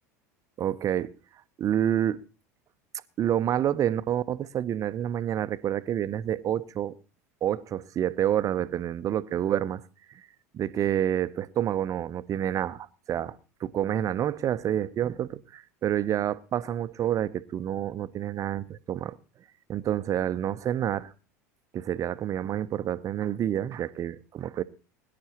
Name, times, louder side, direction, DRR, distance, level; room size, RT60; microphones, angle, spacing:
voice 1, 0.6-1.1 1.6-2.2 3.2-6.9 7.4-9.8 10.1-10.2 10.5-13.4 13.6-19.2 19.7-21.1 21.7-24.6, right 10 dB, 40° right, 0.7 m, -28 dB
22.5 x 10.5 x 3.0 m
hypercardioid pair, 80°, 9 cm